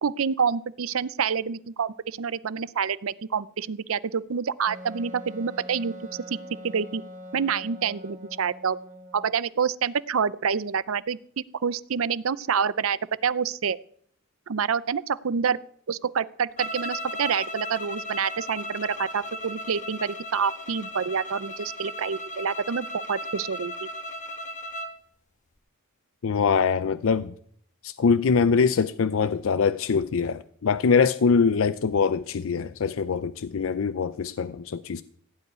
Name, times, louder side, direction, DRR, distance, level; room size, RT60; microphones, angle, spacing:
voice 1, 0.0-6.4 6.6-7.0 7.3-8.8 9.1-11.2 11.5-13.8 14.5-15.6 15.9-23.9, right 6 dB, 70° right, 0.5 m, -27 dB
Wind instrument woodwind instrument, 4.7-9.3, equal, 40° right, 1.7 m, -43 dB
sound 1, 16.6-25.0, left 1 dB, 35° left, 1.1 m, -36 dB
voice 2, 26.2-27.3 27.8-35.0, left 5 dB, 65° left, 0.5 m, -23 dB
16.5 x 5.5 x 9.5 m
head